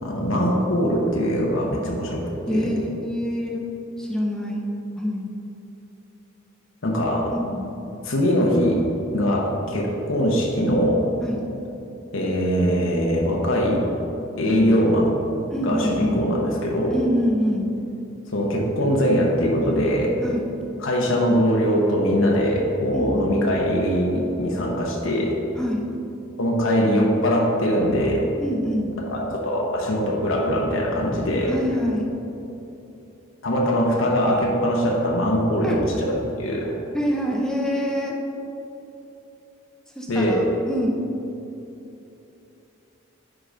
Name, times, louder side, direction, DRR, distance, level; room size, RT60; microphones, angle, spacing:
voice 1, 0.0-2.2 2.5-2.7 6.8-7.3 8.0-8.8 9.1-11.1 12.1-13.8 14.4-15.2 15.6-17.0 18.3-20.2 20.8-25.4 26.4-28.3 29.1-31.6 33.4-36.8 40.1-40.4, equal, 70° left, -1 dB, 1.0 m, -22 dB
voice 2, 2.5-3.6 4.0-4.6 5.0-5.3 7.4-7.7 11.2-11.4 15.5-16.2 16.9-17.7 20.2-20.5 22.9-23.4 25.6-25.8 28.4-28.9 31.5-32.1 35.6-36.0 36.9-38.2 40.0-40.9, equal, 5° left, -2 dB, 0.7 m, -25 dB
9.7 x 3.9 x 5.1 m, 2.9 s
head